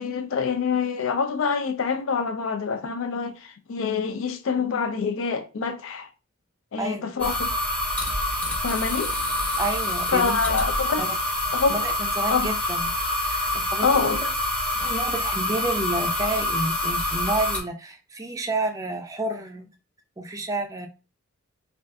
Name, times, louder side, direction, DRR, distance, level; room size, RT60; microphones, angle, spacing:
voice 1, 0.0-6.1 6.7-7.5 8.6-9.1 10.1-11.0 11.5-11.7 12.3-12.5 13.8-14.2, left 5 dB, 65° left, 0.4 m, -26 dB
voice 2, 6.8-7.1 9.6-10.6 11.0-11.1 11.7-12.9 13.2-13.9 14.2-14.3 14.8-19.7 20.2-20.9, right 2 dB, 15° right, 0.4 m, -30 dB
sound 1, 7.2-17.6, left 1 dB, 5° left, 0.8 m, -26 dB
3.3 x 2.4 x 2.6 m
head